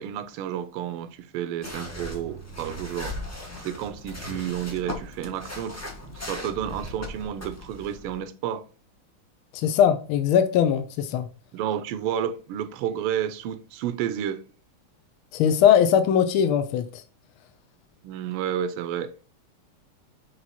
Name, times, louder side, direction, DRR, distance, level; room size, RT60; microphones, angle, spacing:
voice 1, 0.0-3.2 3.6-5.8 6.0-8.6 11.5-14.4 18.0-19.1, right 10 dB, 85° right, 1.6 m, -31 dB
sound 1, 1.6-8.2, left 1 dB, 20° left, 0.4 m, -38 dB
voice 2, 9.5-11.2 15.3-17.0, left 9 dB, 75° left, 1.5 m, -20 dB
7.3 x 3.2 x 4.1 m
omnidirectional pair, 2.4 m